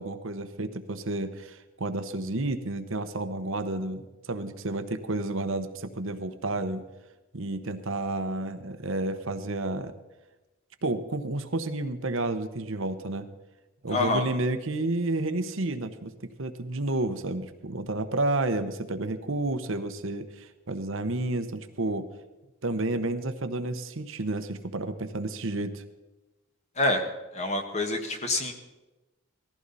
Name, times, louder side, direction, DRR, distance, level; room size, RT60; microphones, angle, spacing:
voice 1, 0.0-6.8 7.3-9.9 10.8-13.3 13.8-22.1 22.6-25.8, right 2 dB, 65° right, 8 dB, 1.0 m, -31 dB
voice 2, 13.9-14.3 26.8-27.0 27.3-28.5, left 2 dB, 30° left, 5 dB, 1.6 m, -26 dB
19.0 x 15.0 x 4.1 m, 1.1 s
head